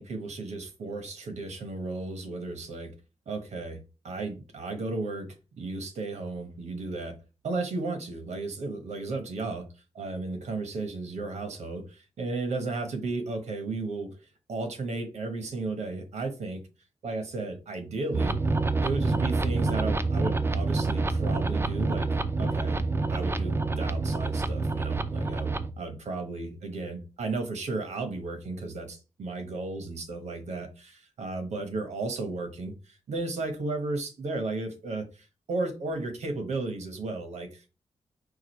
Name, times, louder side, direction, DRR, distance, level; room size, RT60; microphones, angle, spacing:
voice 1, 0.0-2.9 3.3-3.8 4.0-5.3 5.6-7.1 7.4-9.6 9.9-14.1 14.5-16.6 17.0-18.3 18.8-22.1 22.4-22.8 23.1-37.7, right 3 dB, 85° right, 5 dB, 1.2 m, -34 dB
sound 1, 18.1-25.7, right 3 dB, 20° right, 0.4 m, -27 dB
4.7 x 2.5 x 4.5 m, 0.31 s
wide cardioid pair, 105°, 11 cm